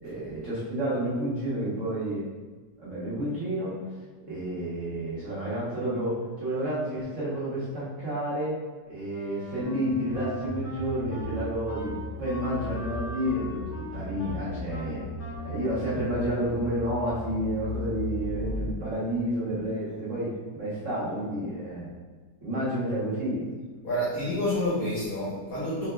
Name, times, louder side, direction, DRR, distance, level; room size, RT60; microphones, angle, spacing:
voice 1, 0.0-2.2 2.8-3.8 4.3-8.5 8.9-15.0 15.4-21.9 22.4-23.4, right 1 dB, 50° right, -8 dB, 1.4 m, -30 dB
Wind instrument woodwind instrument, 9.1-16.7, left 1 dB, 75° left, 1.6 m, -40 dB
sound 1, 9.9-18.7, left 3 dB, 40° left, 0.6 m, -36 dB
voice 2, 23.8-25.9, left 1 dB, 60° left, -9 dB, 1.5 m, -28 dB
4.7 x 4.2 x 2.2 m, 1.4 s
omnidirectional pair, 1.8 m